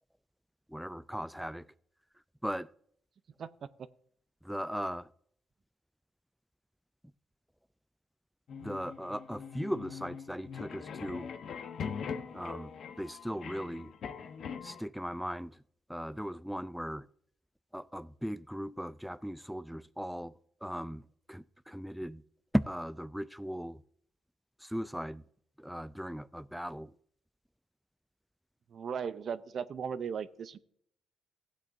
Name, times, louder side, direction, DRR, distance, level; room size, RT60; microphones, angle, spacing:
voice 1, 0.7-1.7 2.4-2.7 4.4-5.1 8.6-11.3 12.3-12.7 13.0-13.9 14.6-15.6 15.9-17.1 17.7-20.3 20.6-21.0 21.3-22.2 22.5-23.8 24.6-25.2 25.6-26.9, equal, ahead, 0.3 m, -37 dB
sound 1, 8.5-14.8, left 6 dB, 65° left, 0.9 m, -42 dB
voice 2, 28.7-30.6, right 7 dB, 55° right, 0.6 m, -37 dB
16.0 x 8.4 x 2.6 m
cardioid pair, 90°, 0 cm